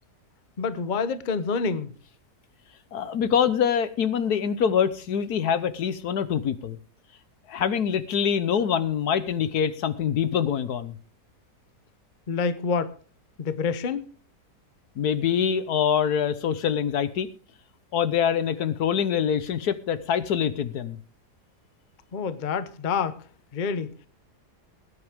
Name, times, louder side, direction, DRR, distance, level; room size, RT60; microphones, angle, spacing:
voice 1, 0.6-1.9 12.3-13.0 13.4-14.1 22.1-23.2 23.5-24.0, left 5 dB, 35° left, 0.8 m, -27 dB
voice 2, 2.9-6.8 7.5-11.0 15.0-17.3 17.9-21.0, left 8 dB, 70° left, 1.4 m, -25 dB
19.0 x 9.9 x 3.6 m
omnidirectional pair, 1.8 m